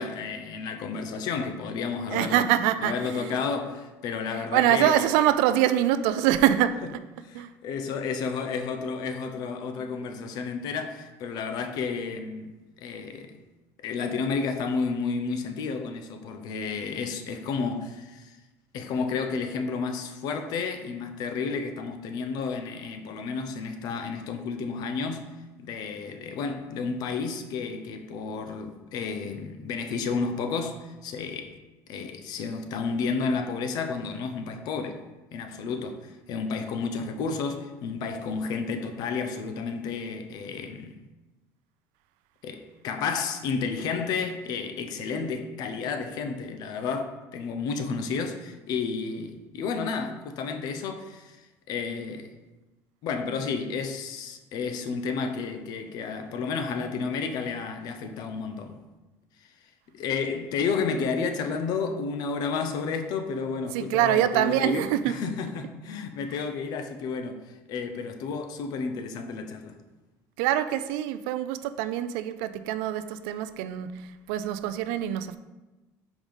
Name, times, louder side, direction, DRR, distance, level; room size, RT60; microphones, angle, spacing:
voice 1, 0.0-2.5 2.8-5.1 7.3-13.4 13.8-18.4 18.7-25.3 25.6-31.5 31.9-35.0 35.3-41.0 42.4-51.4 51.7-52.3 53.0-58.8 59.9-69.8, left 5 dB, 60° left, 0.7 m, -31 dB
voice 2, 2.1-3.4 4.3-7.0 7.3-7.5 63.7-65.2 66.3-66.4 70.4-75.4, right 11 dB, 90° right, 0.4 m, -25 dB
4.9 x 3.9 x 5.2 m
cardioid pair, 140°, 8 cm